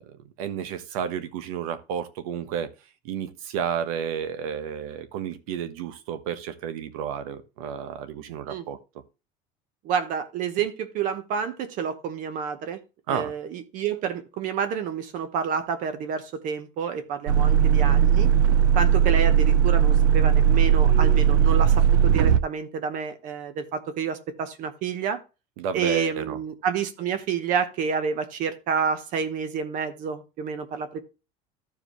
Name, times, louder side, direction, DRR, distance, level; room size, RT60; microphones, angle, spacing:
voice 1, 0.0-2.7 3.0-8.8 13.1-13.3 25.6-26.4, right 8 dB, 90° right, 1.2 m, -31 dB
voice 2, 9.8-12.8 13.1-18.3 18.7-25.2 25.7-31.0, right 7 dB, 50° right, 1.0 m, -29 dB
sound 1, 17.3-22.4, right 9 dB, 70° right, 0.5 m, -18 dB
14.0 x 4.9 x 3.1 m
cardioid pair, 155°, 18 cm